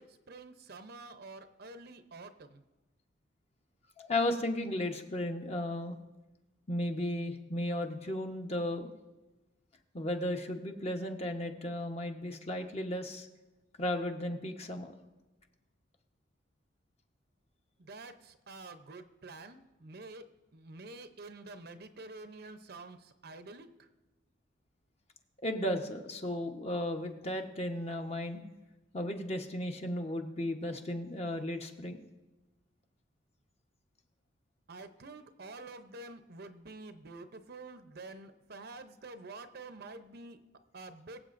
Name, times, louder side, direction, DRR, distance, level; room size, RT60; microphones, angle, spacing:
voice 1, 0.0-2.6 17.8-20.2 20.5-23.7 34.7-40.4 40.7-41.2, right 3 dB, 50° right, 9 dB, 0.7 m, -48 dB
voice 2, 4.0-6.0 6.7-8.9 9.9-13.3 13.8-14.9 25.4-28.4 28.9-32.0, left 1 dB, 30° left, 4 dB, 1.0 m, -35 dB
23.0 x 8.0 x 2.6 m, 1.1 s
head